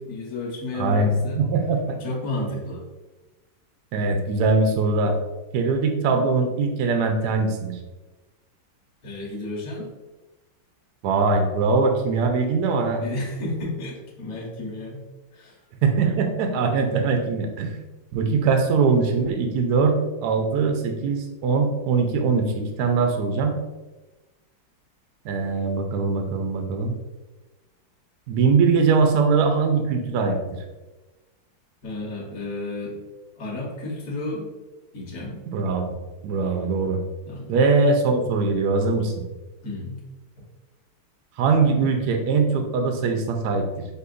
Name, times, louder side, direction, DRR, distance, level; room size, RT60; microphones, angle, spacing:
voice 1, 0.0-1.4 2.0-2.8 9.0-9.9 13.0-15.0 15.3-15.6 31.8-33.0 33.4-34.5 34.9-35.4 37.2-37.5 39.6-40.0, left 2 dB, 45° left, -3 dB, 1.4 m, -32 dB
voice 2, 0.7-2.0 3.9-5.2 5.5-7.8 11.0-13.0 15.8-17.7 18.1-23.6 25.2-27.0 28.3-30.4 35.5-35.8 36.2-37.0 37.5-39.2 41.4-43.9, right 4 dB, 75° right, 5 dB, 0.9 m, -22 dB
6.5 x 2.7 x 2.5 m, 1.1 s
omnidirectional pair, 2.3 m